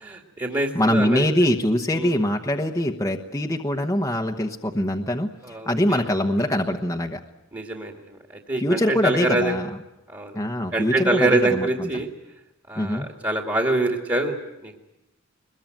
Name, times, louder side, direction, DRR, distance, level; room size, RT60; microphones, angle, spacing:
voice 1, 0.0-1.3 1.9-2.2 5.4-6.0 7.5-8.2 8.5-9.6 10.1-10.3 10.7-12.1 12.7-14.4 14.6-14.8, right 2 dB, 25° right, 2 dB, 2.2 m, -25 dB
voice 2, 0.7-7.2 8.6-9.7 10.3-11.9 12.8-13.1, left 1 dB, 15° left, 1 dB, 1.1 m, -23 dB
22.5 x 21.5 x 9.2 m, 0.98 s
head